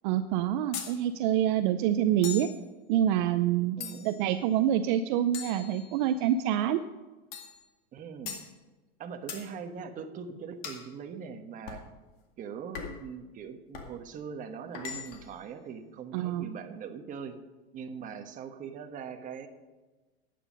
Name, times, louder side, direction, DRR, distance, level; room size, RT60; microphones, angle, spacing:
voice 1, 0.0-2.5 2.9-3.8 4.0-6.8 16.1-16.5, right 11 dB, 55° right, 9 dB, 0.6 m, -26 dB
sound 1, 0.7-1.0 2.2-2.6 3.8-4.3 5.3-6.2 7.3-7.6 8.3-8.5 9.3-9.5 10.6-10.9 11.7-11.9 12.7-13.1 13.7-14.0 14.7-15.3, left 7 dB, 50° left, 2.2 m, -40 dB
voice 2, 3.8-4.1 7.9-8.4 9.0-11.8 12.4-17.4 17.7-19.5, right 6 dB, 25° right, 5 dB, 1.2 m, -41 dB
11.5 x 9.4 x 5.2 m, 1.2 s
supercardioid pair, 145°, 30 cm